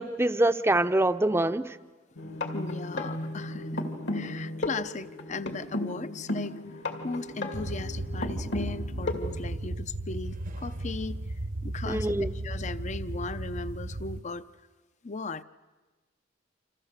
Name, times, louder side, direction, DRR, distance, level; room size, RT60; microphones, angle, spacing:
voice 1, 0.0-1.8 11.9-12.3, right 1 dB, 15° right, 0.7 m, -25 dB
sound 1, 2.2-9.5, left 1 dB, 70° left, 2.3 m, -35 dB
voice 2, 2.5-6.6 7.0-11.2 11.6-14.4 15.0-15.4, left 3 dB, 40° left, 0.7 m, -37 dB
sound 2, 7.5-14.2, right 1 dB, 50° right, 1.0 m, -35 dB
28.0 x 26.5 x 6.7 m
head